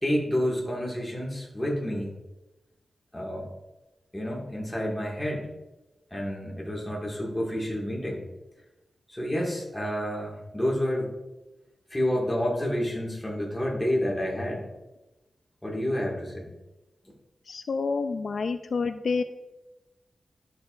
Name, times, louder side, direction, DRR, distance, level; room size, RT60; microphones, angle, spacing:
voice 1, 0.0-2.1 3.1-3.5 4.1-5.5 6.1-8.2 9.1-11.1 11.9-14.6 15.6-16.5, equal, 5° left, -4 dB, 1.9 m, -29 dB
voice 2, 17.5-19.2, left 4 dB, 65° left, 8 dB, 0.4 m, -28 dB
12.0 x 6.6 x 2.5 m, 1.0 s
wide cardioid pair, 150°, 0 cm